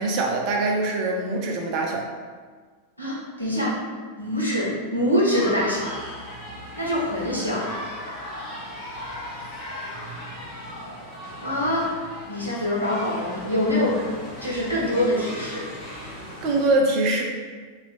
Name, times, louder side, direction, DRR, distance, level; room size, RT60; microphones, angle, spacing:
voice 1, 0.0-2.1 16.4-17.2, right 2 dB, 40° right, 1 dB, 0.5 m, -23 dB
voice 2, 3.0-3.8 4.2-6.2 6.7-7.6 11.4-14.0 14.4-15.7, left 1 dB, 90° left, -6 dB, 0.9 m, -25 dB
sound 1, 5.3-16.7, equal, 35° left, 1.1 m, -37 dB
2.9 x 2.4 x 4.1 m, 1.5 s
figure-of-eight pair, 90°, 0 cm